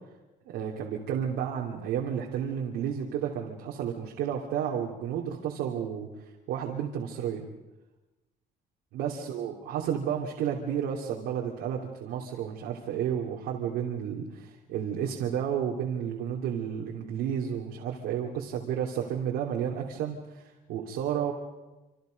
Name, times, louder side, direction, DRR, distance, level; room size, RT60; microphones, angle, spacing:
voice 1, 0.5-6.1 6.5-7.4 8.9-21.3, right 8 dB, 90° right, -1 dB, 3.1 m, -32 dB
27.5 x 27.0 x 5.3 m, 1.1 s
cardioid pair, 110°, 17 cm